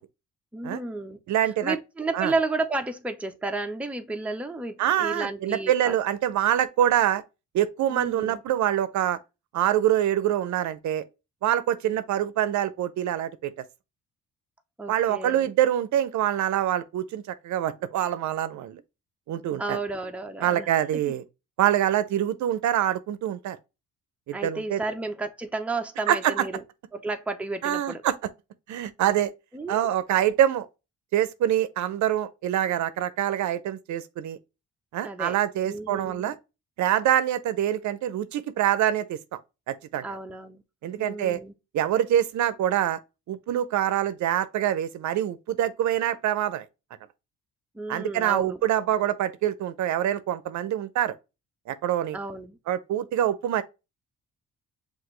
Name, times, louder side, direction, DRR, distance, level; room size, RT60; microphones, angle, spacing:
voice 1, 0.5-1.2 1.6-6.0 7.9-8.4 14.8-15.5 19.6-21.1 24.3-26.6 26.9-28.0 29.5-29.9 35.0-35.4 35.6-36.3 40.0-40.6 41.0-41.5 47.7-48.6 52.1-52.6, right 3 dB, 5° right, 0.6 m, -32 dB
voice 2, 1.3-1.8 2.1-2.3 4.8-7.2 7.5-9.2 9.5-11.0 11.4-13.5 14.9-18.8 19.3-19.8 20.4-21.2 21.6-23.6 24.3-24.8 26.1-26.5 27.6-28.1 28.7-29.3 29.7-30.7 31.1-34.4 34.9-36.4 36.8-39.2 39.7-40.2 40.8-41.4 41.7-43.0 43.3-46.6 47.9-51.1 51.7-52.2 52.7-53.6, right 11 dB, 70° right, 0.6 m, -25 dB
5.8 x 2.5 x 3.1 m
cardioid pair, 90°, 30 cm